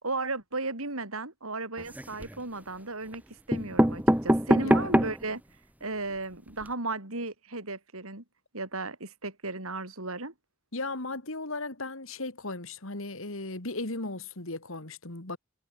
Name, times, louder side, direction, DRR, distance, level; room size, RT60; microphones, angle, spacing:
voice 1, 0.0-3.2 3.5-5.4 5.8-8.2 8.5-10.3, right 3 dB, 70° right, 5.0 m, -35 dB
sound 1, 1.8-2.4 3.1-3.2 3.5-5.3 5.8-5.9 6.1-6.2 6.5-6.7, equal, 5° right, 1.6 m, -24 dB
voice 2, 4.6-5.0 10.7-15.4, left 2 dB, 65° left, 2.6 m, -36 dB
head